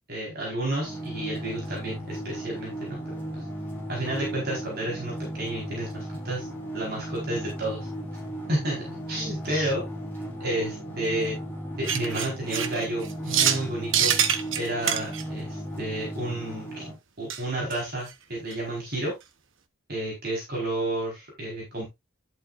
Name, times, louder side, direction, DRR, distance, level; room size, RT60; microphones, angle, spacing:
voice 1, 0.1-3.0 3.3-3.4 3.9-6.5 6.7-7.9 8.5-9.8 10.4-11.4 11.8-14.2 14.6-16.8 17.2-19.1 19.9-21.9, right 1 dB, 45° right, -2 dB, 4.8 m, -31 dB
sound 1, 0.8-16.9, right 1 dB, 10° left, 4.5 m, -36 dB
sound 2, 11.8-13.6 13.9-15.2 17.3-17.4 17.7-17.8 18.1-18.2 18.5-18.6, right 9 dB, 65° right, 1.1 m, -25 dB
11.0 x 7.6 x 2.6 m, 0.21 s
head